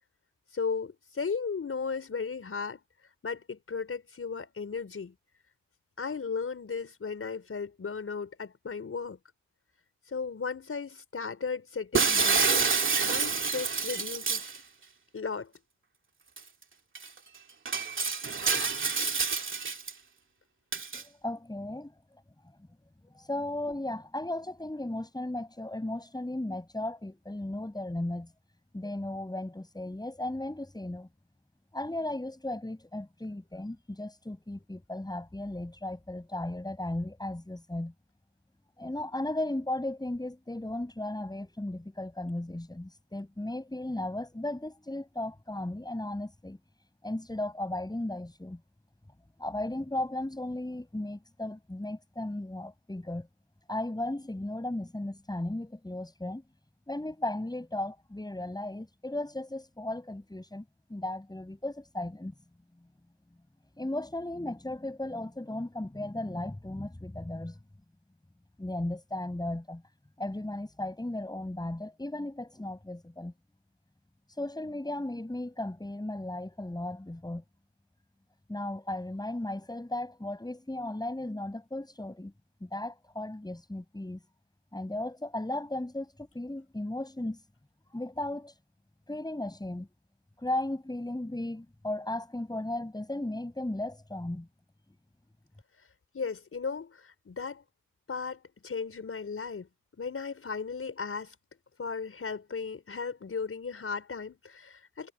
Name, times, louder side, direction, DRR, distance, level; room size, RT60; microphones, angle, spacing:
voice 1, 0.5-2.8 3.2-5.1 6.0-9.2 10.1-12.7 13.0-14.5 15.1-15.5 96.1-97.6 98.1-99.7 100.0-101.4 101.8-105.1, left 5 dB, 50° left, 5.3 m, -36 dB
Shatter, 11.9-14.6 16.4-16.5 16.9-17.1 17.7-19.9 20.7-21.0, right 5 dB, 40° right, 2.6 m, -28 dB
voice 2, 20.9-22.2 23.0-28.3 28.7-31.1 31.7-37.9 38.8-46.6 47.0-48.6 49.4-53.3 53.7-56.4 56.9-60.6 60.9-62.3 63.8-67.6 68.6-69.8 70.2-73.3 74.4-77.4 78.5-82.3 82.6-84.2 84.7-87.4 87.9-88.5 89.1-89.9 90.4-94.5, left 1 dB, 15° left, 7.7 m, -36 dB
supercardioid pair, 55°, 29 cm